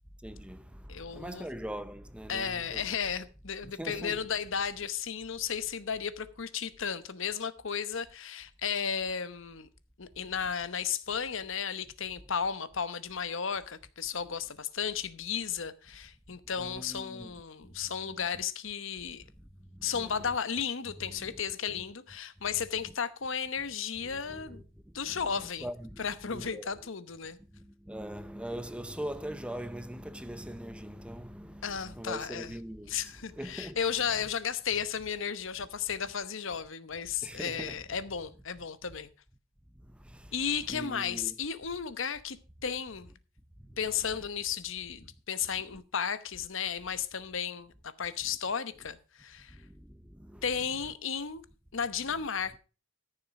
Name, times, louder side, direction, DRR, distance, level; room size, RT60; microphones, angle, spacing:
voice 1, 0.2-2.9 3.6-4.3 16.3-17.4 18.3-18.4 19.2-19.3 19.7-20.4 21.0-21.4 21.7-21.8 24.0-26.7 27.5-33.8 37.2-37.9 39.8-40.3 40.7-41.4 43.6-43.8 45.7-45.8 48.2-48.4 49.5-50.4 50.7-50.8, equal, 5° right, 0.6 m, -42 dB
voice 2, 0.9-1.5 2.3-9.7 10.0-19.2 19.8-24.6 24.9-25.7 26.0-27.4 31.6-32.5 32.9-39.1 40.3-42.4 42.6-43.1 43.8-49.6 50.4-51.4 51.7-52.6, left 7 dB, 65° left, 1.0 m, -34 dB
14.0 x 6.7 x 4.8 m
head